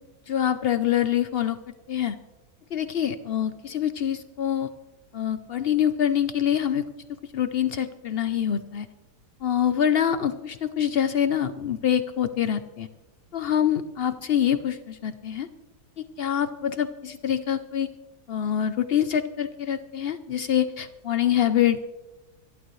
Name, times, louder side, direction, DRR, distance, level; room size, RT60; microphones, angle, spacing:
voice 1, 0.3-1.6 1.9-2.2 2.7-4.7 5.1-6.9 7.3-8.9 9.4-12.9 13.3-15.5 16.0-17.9 18.3-21.8, left 9 dB, 85° left, 11 dB, 0.5 m, -25 dB
25.5 x 11.5 x 3.1 m, 1.1 s
omnidirectional pair, 1.8 m